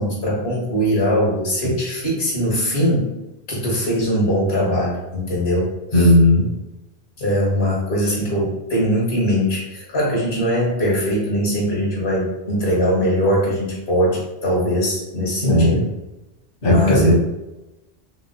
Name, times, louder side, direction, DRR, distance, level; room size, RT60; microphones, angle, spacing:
voice 1, 0.0-3.1 3.5-6.1 7.2-15.9 16.6-17.1, equal, 85° left, -4 dB, 1.7 m, -21 dB
voice 2, 5.9-6.5 15.4-15.8 16.6-17.1, left 1 dB, 60° left, -4 dB, 1.6 m, -14 dB
4.9 x 3.8 x 2.3 m, 0.99 s
omnidirectional pair, 1.0 m